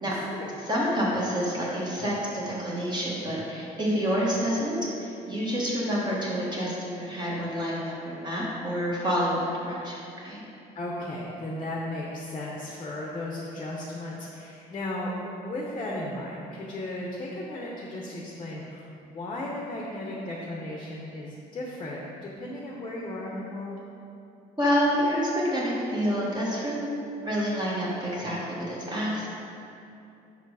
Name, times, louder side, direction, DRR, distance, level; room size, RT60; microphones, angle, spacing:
voice 1, 0.0-0.5 10.7-23.7, left 1 dB, 30° left, -2 dB, 0.7 m, -35 dB
voice 2, 0.6-10.4 24.6-26.8 27.2-29.3, equal, 25° right, -5 dB, 1.2 m, -28 dB
5.1 x 4.5 x 4.8 m, 2.7 s
cardioid pair, 110°, 17 cm